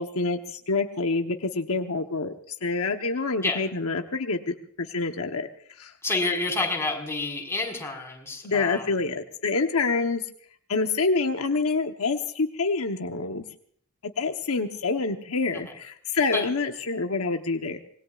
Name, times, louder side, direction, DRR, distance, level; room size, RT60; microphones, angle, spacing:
voice 1, 0.0-5.5 5.8-5.9 8.4-10.2 10.7-13.4 14.2-17.8, left 3 dB, 75° left, 5 dB, 1.1 m, -27 dB
voice 2, 6.0-8.9 15.5-15.6 16.3-16.5, left 2 dB, 10° left, 0 dB, 5.0 m, -28 dB
26.0 x 20.5 x 2.5 m, 0.62 s
head